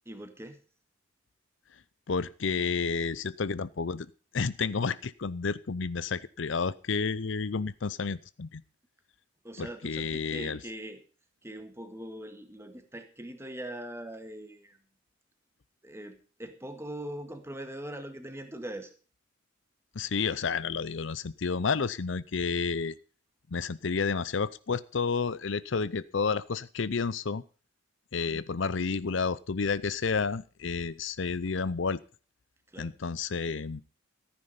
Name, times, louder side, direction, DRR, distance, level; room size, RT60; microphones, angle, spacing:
voice 1, 0.0-0.6 9.4-11.0 11.4-14.8 15.8-18.9 28.2-28.4 32.7-33.0, right 1 dB, 15° right, 7 dB, 1.8 m, -41 dB
voice 2, 2.1-8.6 9.6-10.6 19.9-22.9 23.5-27.4 28.1-32.0 32.8-33.8, left 5 dB, 65° left, 17 dB, 0.6 m, -31 dB
14.5 x 9.8 x 5.5 m, 0.36 s
head